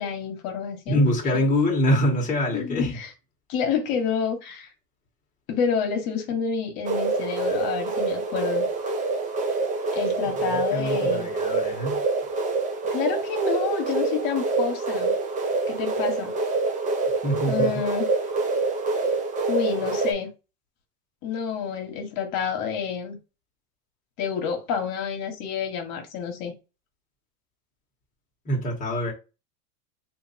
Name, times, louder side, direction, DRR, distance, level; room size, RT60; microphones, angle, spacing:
voice 1, 0.0-1.0 1.3-1.4 2.5-3.1 3.5-4.7 5.5-8.7 9.9-11.3 12.9-15.1 15.7-16.3 17.5-18.1 19.5-20.3 21.2-23.2 24.2-26.5, left 6 dB, 50° left, 1.3 m, -28 dB
voice 2, 0.9-3.0 10.4-12.0 17.2-17.7 28.4-29.1, equal, 15° left, 1.3 m, -24 dB
sound 1, 6.9-20.1, right 3 dB, 20° right, 0.4 m, -26 dB
2.6 x 2.6 x 4.1 m
supercardioid pair, 135°, 44 cm